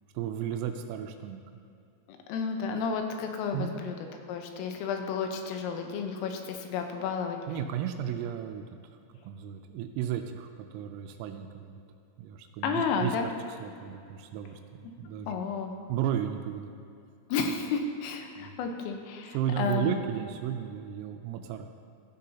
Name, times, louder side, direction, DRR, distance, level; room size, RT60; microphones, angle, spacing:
voice 1, 0.1-1.6 3.5-3.7 7.5-8.6 9.2-11.8 12.2-15.4 15.9-16.7 18.4-18.6 19.3-21.7, right 9 dB, 90° right, 5 dB, 3.3 m, -34 dB
voice 2, 2.3-4.0 4.3-7.4 12.6-13.3 15.3-15.7 17.3-20.0, left 5 dB, 85° left, 4 dB, 3.6 m, -32 dB
17.0 x 12.5 x 2.8 m, 2.6 s
omnidirectional pair, 5.8 m